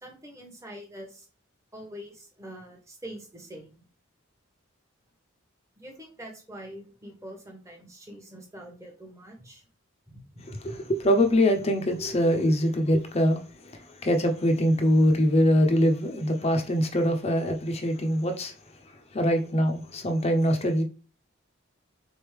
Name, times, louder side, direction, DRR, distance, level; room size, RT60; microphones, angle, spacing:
voice 1, 0.0-1.3 1.7-3.8 5.8-9.7 10.1-10.9, equal, 15° right, 1.0 m, -44 dB
voice 2, 10.5-18.5 19.1-20.8, equal, 30° left, 0.6 m, -23 dB
3.9 x 3.5 x 3.2 m
head